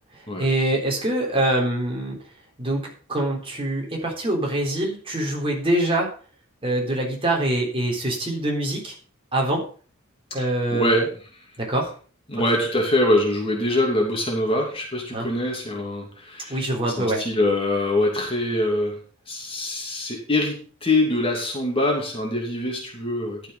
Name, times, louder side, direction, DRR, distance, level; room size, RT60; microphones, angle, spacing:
voice 1, 0.4-2.2 2.6-2.8 3.1-6.1 6.6-8.9 9.3-9.6 10.3-11.1 11.6-11.9 15.1-15.3 16.5-17.2, right 1 dB, 25° right, -1 dB, 3.8 m, -24 dB
voice 2, 10.7-11.1 12.3-19.0 19.3-23.4, left 1 dB, 25° left, 0 dB, 2.9 m, -24 dB
12.0 x 7.3 x 5.3 m, 0.40 s
head